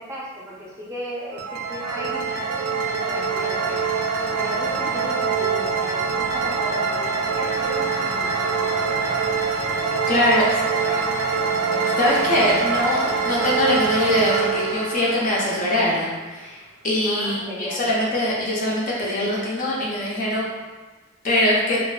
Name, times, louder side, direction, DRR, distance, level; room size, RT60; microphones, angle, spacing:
voice 1, 0.0-3.8 4.3-8.6 8.9-9.2 10.1-10.3 10.8-11.0 17.0-17.9, equal, 15° right, -7 dB, 0.5 m, -35 dB
sound 1, 1.3-16.2, right 5 dB, 75° right, 0.4 m, -24 dB
voice 2, 10.1-10.4 12.0-20.5 21.2-21.8, left 1 dB, 40° left, -5 dB, 0.4 m, -22 dB
2.4 x 2.3 x 2.2 m, 1.3 s
head